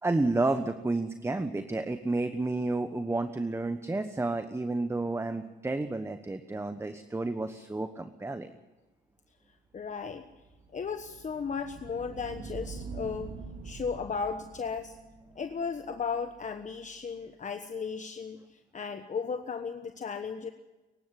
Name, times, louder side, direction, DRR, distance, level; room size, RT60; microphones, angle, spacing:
voice 1, 0.0-8.5, right 2 dB, 15° right, 9 dB, 1.1 m, -31 dB
voice 2, 9.7-10.3 10.7-13.4 13.6-15.0 15.3-20.5, left 5 dB, 40° left, 7 dB, 1.3 m, -35 dB
sound 1, 10.1-16.9, right 4 dB, 85° right, 3.0 m, -46 dB
22.5 x 12.0 x 9.8 m, 1.1 s
cardioid pair, 90°, 20 cm